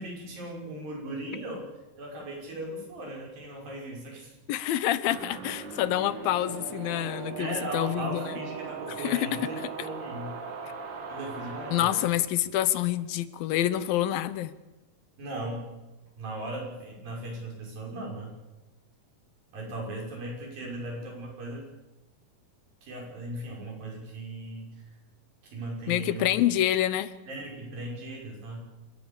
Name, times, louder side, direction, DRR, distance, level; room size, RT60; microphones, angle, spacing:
voice 1, 0.0-1.7 2.0-4.3 7.4-10.4 11.1-12.0 15.2-15.7 16.2-18.4 19.5-21.7 22.8-25.0 25.4-26.4 27.3-28.6, right 1 dB, 80° right, -1 dB, 7.9 m, -38 dB
voice 2, 4.5-8.3 9.0-9.5 11.7-14.5 25.9-27.1, left 13 dB, 90° left, 15 dB, 2.8 m, -27 dB
sound 1, 5.1-12.1, right 5 dB, 45° right, 1.9 m, -39 dB
28.5 x 16.5 x 7.2 m, 1.1 s
omnidirectional pair, 4.0 m